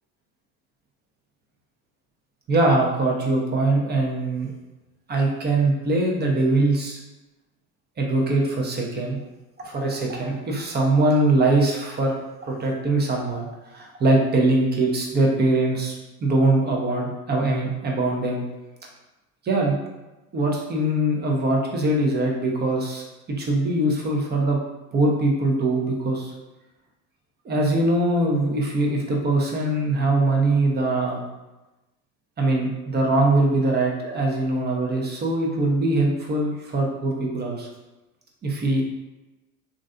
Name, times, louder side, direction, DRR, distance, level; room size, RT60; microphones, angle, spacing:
voice 1, 2.5-4.5 5.1-7.0 8.0-9.2 9.6-12.1 12.4-15.9 16.2-18.4 19.4-19.8 20.3-24.6 24.9-26.3 27.4-31.2 32.4-37.7 38.4-38.8, right 2 dB, 25° right, 0 dB, 0.6 m, -22 dB
3.1 x 2.5 x 2.5 m, 1.0 s
hypercardioid pair, 95°, 43 cm